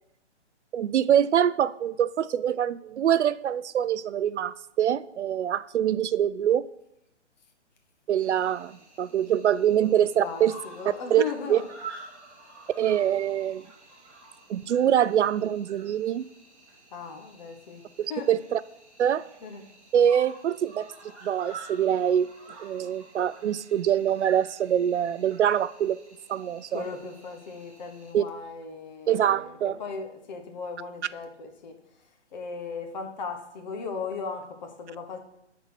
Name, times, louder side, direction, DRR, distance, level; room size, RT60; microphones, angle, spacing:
voice 1, 0.7-6.7 8.1-10.5 11.1-11.2 11.5-11.6 12.8-13.6 14.5-16.2 18.0-18.6 19.0-19.2 19.9-20.9 21.2-22.3 22.6-26.0 26.3-26.8 28.1-28.2 29.1-29.8, right 10 dB, 75° right, 0.5 m, -24 dB
Cricket, 8.2-28.1, right 3 dB, 5° right, 2.2 m, -49 dB
voice 2, 9.6-11.6 16.9-17.8 18.1-18.3 19.4-19.6 26.7-31.7 32.3-35.2, left 5 dB, 40° left, 1.3 m, -37 dB
9.3 x 4.3 x 6.1 m
hypercardioid pair, 145°, 35 cm